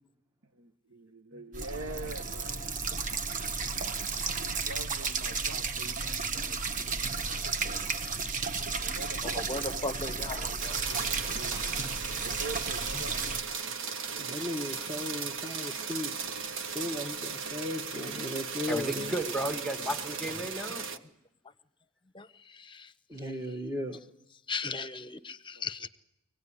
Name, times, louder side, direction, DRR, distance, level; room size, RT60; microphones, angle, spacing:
voice 1, 0.5-2.7 4.4-8.0 8.6-11.7 12.2-13.3 25.5-25.7, right 3 dB, 85° right, 6 dB, 1.0 m, -46 dB
sound 1, 1.5-13.4, right 4 dB, 40° right, 1.0 m, -33 dB
voice 2, 9.2-11.6 14.2-14.4 14.9-15.0 20.7-21.0 22.1-23.3 24.5-25.9, left 3 dB, 25° left, 14 dB, 0.9 m, -39 dB
sound 2, 10.6-21.0, right 5 dB, 65° right, 1.3 m, -37 dB
voice 3, 14.2-16.3 16.6-19.1 23.1-24.0, left 1 dB, 20° right, 1 dB, 1.1 m, -36 dB
voice 4, 18.7-20.8, right 1 dB, ahead, 8 dB, 1.7 m, -33 dB
24.5 x 18.0 x 9.8 m, 0.90 s
head